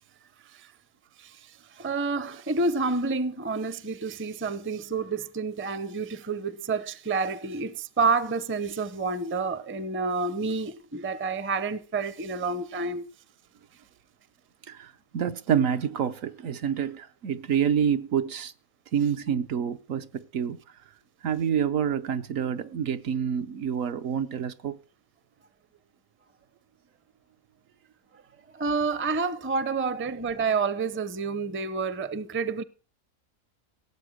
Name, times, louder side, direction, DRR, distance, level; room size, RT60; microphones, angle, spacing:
voice 1, 1.2-13.1 28.5-32.6, right 4 dB, 15° right, 0.5 m, -29 dB
voice 2, 14.7-18.5 18.9-20.6 21.2-24.8, right 8 dB, 70° right, 1.2 m, -27 dB
17.5 x 8.0 x 6.4 m
omnidirectional pair, 1.4 m